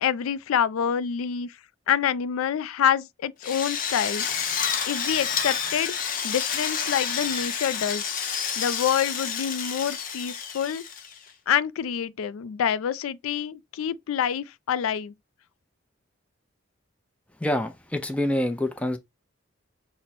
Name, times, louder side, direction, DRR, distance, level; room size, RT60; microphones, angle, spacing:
voice 1, 0.0-1.5 1.9-4.5 4.9-10.8 11.5-15.1, left 8 dB, 90° left, 0.3 m, -27 dB
Drill, 3.4-11.3, left 7 dB, 45° left, 0.7 m, -29 dB
voice 2, 17.4-19.0, left 1 dB, 5° left, 0.5 m, -26 dB
5.9 x 2.1 x 4.1 m
head